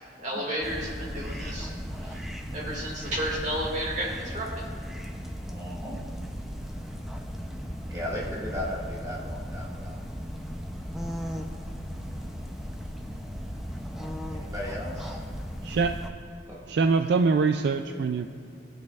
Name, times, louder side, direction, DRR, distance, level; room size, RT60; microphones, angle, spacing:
voice 1, 0.2-1.7 2.0-2.2 2.5-4.5, right 1 dB, 40° right, -3 dB, 1.9 m, -32 dB
sound 1, 0.6-16.1, equal, ahead, 0.5 m, -36 dB
voice 2, 5.4-6.0 7.9-10.0 14.3-15.2 16.5-16.6, left 1 dB, 20° right, -6 dB, 1.7 m, -36 dB
voice 3, 16.7-18.3, right 4 dB, 60° right, 7 dB, 0.3 m, -23 dB
19.0 x 6.4 x 2.4 m, 2.4 s
head